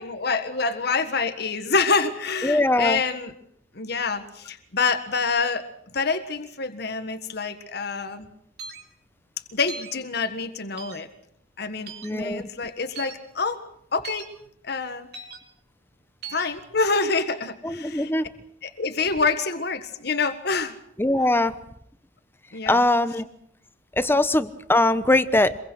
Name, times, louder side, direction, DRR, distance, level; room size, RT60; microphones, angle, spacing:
voice 1, 0.0-3.3 3.8-5.6 5.9-8.3 9.5-11.1 11.6-13.6 13.9-14.3 14.6-15.1 16.3-18.1 18.6-20.8 22.5-22.8, left 4 dB, 60° left, 9 dB, 1.7 m, -26 dB
voice 2, 2.4-3.0 12.0-12.4 17.6-18.3 21.0-21.6 22.7-23.3 24.0-25.6, left 2 dB, 10° left, 13 dB, 0.9 m, -21 dB
sound 1, 8.6-8.8 9.7-9.9 10.8-11.0 11.9-12.1 12.9-13.1 14.0-14.2 15.1-15.4 16.2-16.5, right 6 dB, 60° right, 3.8 m, -38 dB
26.0 x 22.5 x 6.3 m, 0.68 s
head